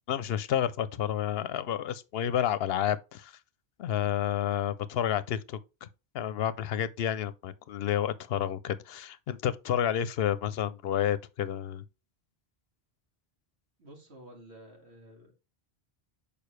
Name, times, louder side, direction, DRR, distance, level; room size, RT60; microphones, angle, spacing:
voice 1, 0.1-3.4 3.8-5.9 6.1-11.8, left 10 dB, 75° left, 0.8 m, -30 dB
voice 2, 13.8-15.3, right 1 dB, 90° right, 2.3 m, -51 dB
6.6 x 5.2 x 3.2 m
omnidirectional pair, 1.1 m